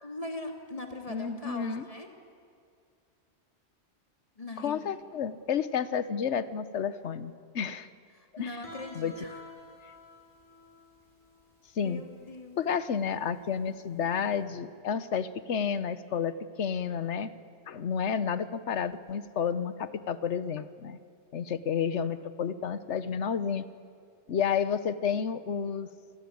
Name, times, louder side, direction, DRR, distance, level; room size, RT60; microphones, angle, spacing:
voice 1, 0.0-2.1 4.4-4.9 8.1-9.4 11.8-12.6, left 2 dB, 30° left, 3 dB, 2.7 m, -41 dB
voice 2, 1.1-1.8 4.6-7.9 8.4-8.5 8.9-9.1 11.8-12.0 12.6-17.3 17.7-21.0 21.3-23.7 24.3-25.9, left 7 dB, 80° left, 14 dB, 1.2 m, -31 dB
Guitar, 8.6-14.3, left 1 dB, 45° right, 6.7 m, -51 dB
27.5 x 20.0 x 8.6 m, 2.3 s
omnidirectional pair, 1.2 m